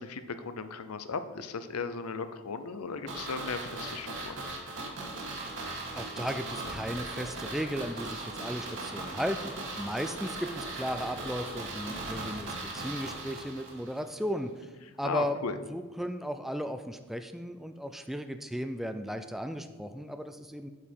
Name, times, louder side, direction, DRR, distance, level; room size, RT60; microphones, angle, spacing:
voice 1, 0.0-4.4 15.0-15.6, left 4 dB, 85° left, 11 dB, 0.7 m, -36 dB
sound 1, 3.1-14.0 14.3-14.4, right 2 dB, 55° right, 1.9 m, -38 dB
voice 2, 6.0-14.7 15.0-15.4 15.7-20.7, equal, ahead, 8 dB, 0.3 m, -35 dB
8.4 x 7.3 x 4.5 m, 1.4 s
head